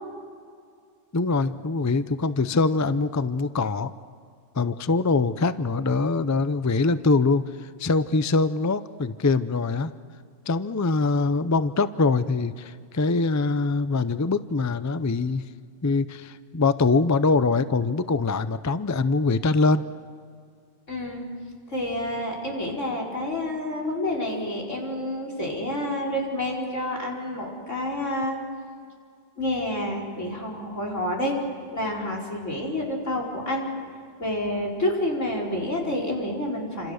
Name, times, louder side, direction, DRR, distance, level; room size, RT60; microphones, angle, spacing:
voice 1, 1.1-3.9 4.5-9.9 10.5-15.4 15.8-19.8, left 3 dB, 20° left, 13 dB, 0.4 m, -23 dB
voice 2, 20.9-21.2 21.7-28.4 29.4-31.4 31.7-33.7 34.2-36.9, left 1 dB, 80° left, 0 dB, 5.2 m, -28 dB
28.5 x 27.0 x 6.6 m, 2.2 s
omnidirectional pair, 1.3 m